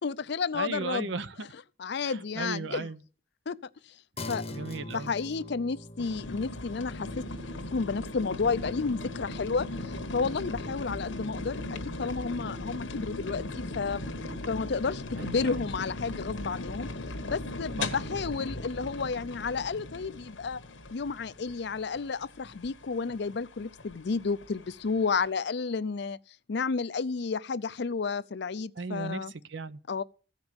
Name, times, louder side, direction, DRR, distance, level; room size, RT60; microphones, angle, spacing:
voice 1, 0.0-1.1 1.8-2.9 3.5-3.6 3.9-4.0 4.3-4.6 4.9-7.2 7.7-14.0 14.5-16.9 17.3-20.6 20.9-29.3 29.9-30.0, left 4 dB, 60° left, 0.5 m, -31 dB
voice 2, 0.5-1.5 2.0-3.0 4.2-5.1 15.2-15.7 17.8-18.1 28.8-29.8, right 3 dB, 70° right, 0.7 m, -36 dB
sound 1, 4.2-13.9, left 2 dB, 30° left, 0.9 m, -46 dB
sound 2, 6.0-25.3, left 2 dB, 80° left, 1.2 m, -38 dB
sound 3, 6.9-14.4, left 3 dB, 10° right, 1.0 m, -47 dB
15.0 x 5.3 x 7.9 m
head